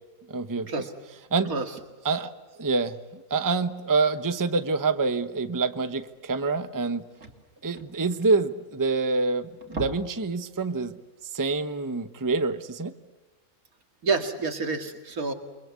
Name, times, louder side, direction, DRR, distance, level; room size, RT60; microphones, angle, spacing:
voice 1, 0.3-0.7 1.3-1.5 2.0-2.3 2.6-7.0 7.6-11.0 11.3-12.9, right 3 dB, 15° right, 10 dB, 0.9 m, -26 dB
sound 1, 6.1-6.2 6.5-6.6 6.8-9.1 9.5-10.3 10.6-10.8 11.2-11.3, right 2 dB, 60° right, 3.1 m, -40 dB
voice 2, 14.0-15.3, right 4 dB, 75° right, 6 dB, 2.6 m, -28 dB
28.5 x 23.5 x 8.3 m, 1.2 s
omnidirectional pair, 1.5 m